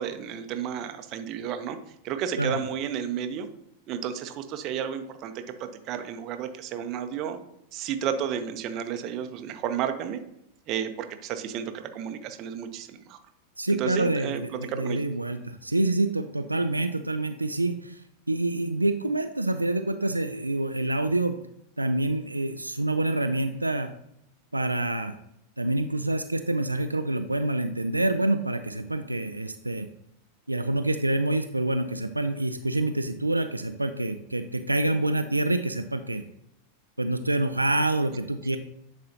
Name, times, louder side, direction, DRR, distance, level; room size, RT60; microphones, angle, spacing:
voice 1, 0.0-1.8 2.0-3.5 3.9-7.4 7.7-10.2 10.7-13.2 13.7-14.4 14.7-15.0, right 8 dB, 40° right, 8 dB, 0.7 m, -32 dB
voice 2, 13.6-18.0 18.3-21.3 21.8-23.9 24.5-25.2 25.6-29.9 30.5-36.2 37.0-38.6, right 2 dB, 85° right, 7 dB, 0.3 m, -27 dB
10.0 x 4.2 x 2.8 m, 0.78 s
figure-of-eight pair, 90°, 0 cm